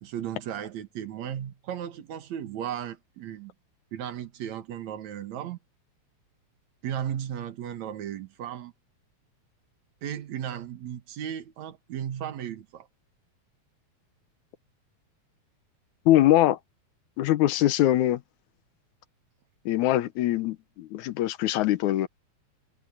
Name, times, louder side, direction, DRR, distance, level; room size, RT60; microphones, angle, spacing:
voice 1, 0.0-3.5 3.9-5.6 6.8-8.7 10.0-12.9, right 9 dB, 70° right, 2.7 m, -35 dB
voice 2, 16.1-16.6 17.2-18.2 19.7-22.1, left 14 dB, 85° left, 2.3 m, -22 dB
omnidirectional pair, 3.3 m